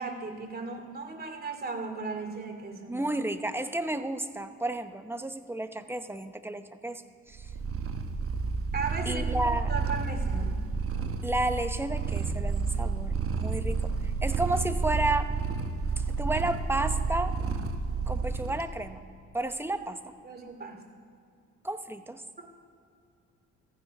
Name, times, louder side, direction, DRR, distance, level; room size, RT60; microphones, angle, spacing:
voice 1, 0.0-3.1 8.7-10.7 20.2-20.8 22.4-22.5, right 4 dB, 30° right, 3 dB, 2.5 m, -36 dB
voice 2, 2.9-7.0 7.3-7.5 9.1-9.7 11.2-15.3 16.0-17.3 18.1-19.0 19.3-20.0 21.6-22.2, right 2 dB, 10° right, 8 dB, 0.8 m, -32 dB
Purr, 7.4-18.7, right 5 dB, 45° right, 1.2 m, -30 dB
15.0 x 11.0 x 5.4 m, 2.5 s
cardioid pair, 90°, 30 cm